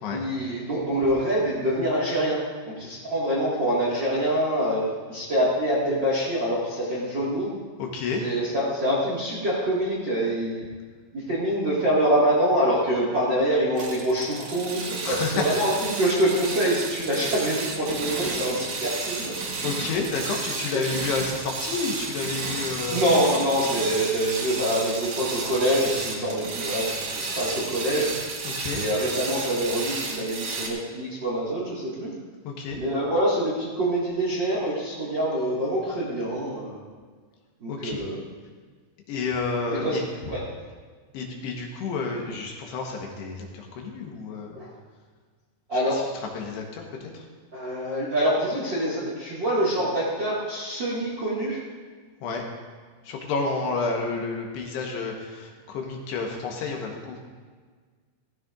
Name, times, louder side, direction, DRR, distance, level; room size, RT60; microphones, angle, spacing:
voice 1, 0.1-4.8 5.1-7.5 8.2-10.6 11.1-19.3 22.9-28.1 28.7-32.1 32.8-36.8 37.6-38.2 39.8-40.0 40.3-40.4 44.5-44.7 45.7-46.0 47.5-51.6, equal, 40° right, -6 dB, 1.6 m, -25 dB
voice 2, 7.8-8.2 15.0-15.5 19.6-23.1 28.4-28.8 32.4-32.8 37.7-38.0 39.1-40.0 41.1-44.6 45.7-47.3 52.2-52.4 53.0-57.3, left 4 dB, 75° left, 1 dB, 3.1 m, -30 dB
sound 1, 13.8-30.7, right 3 dB, 85° right, 1.3 m, -32 dB
15.5 x 15.5 x 2.6 m, 1.5 s
omnidirectional pair, 5.2 m